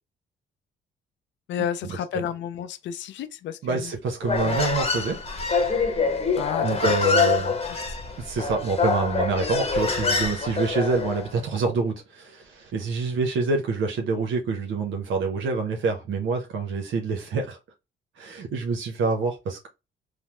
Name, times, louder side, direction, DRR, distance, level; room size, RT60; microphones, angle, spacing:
voice 1, 1.5-3.9 4.4-4.6 6.4-7.1 7.4-8.0, left 9 dB, 65° left, 0.5 m, -32 dB
voice 2, 3.6-5.2 6.6-7.5 8.2-17.6 18.2-19.7, right 4 dB, 75° right, 0.8 m, -26 dB
Human voice, 4.2-11.3, left 4 dB, 30° left, 0.9 m, -25 dB
3.3 x 2.0 x 2.9 m
cardioid pair, 90°, 20 cm